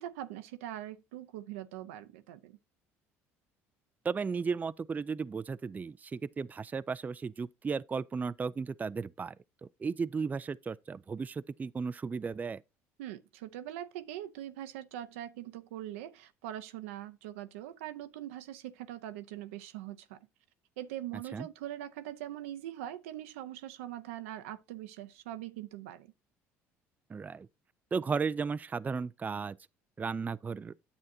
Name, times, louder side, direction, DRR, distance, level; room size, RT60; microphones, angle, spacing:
voice 1, 0.0-2.6 13.0-20.2 20.8-26.1, right 12 dB, 85° right, 0.7 m, -42 dB
voice 2, 4.0-9.3 9.8-12.6 21.3-21.5 27.1-27.5 27.9-29.6 30.0-30.7, right 5 dB, 25° right, 0.4 m, -35 dB
9.7 x 7.5 x 2.7 m
hypercardioid pair, 70°, 7 cm